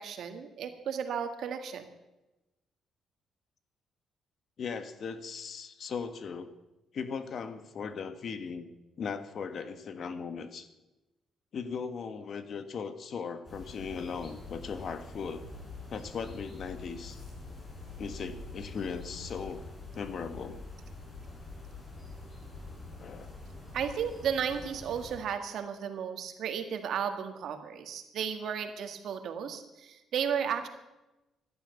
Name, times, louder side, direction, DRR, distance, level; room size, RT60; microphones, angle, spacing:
voice 1, 0.0-1.9 23.7-30.7, right 7 dB, 70° right, 7 dB, 1.8 m, -34 dB
voice 2, 4.6-6.5 6.9-8.7 9.0-10.7 11.5-15.5 15.9-17.2 18.0-19.6 19.9-20.6 23.0-23.3, left 6 dB, 55° left, 10 dB, 1.5 m, -38 dB
sound 1, 13.4-25.2, left 2 dB, 30° left, 6.8 m, -45 dB
15.0 x 11.5 x 7.1 m, 1.0 s
cardioid pair, 90°, 0 cm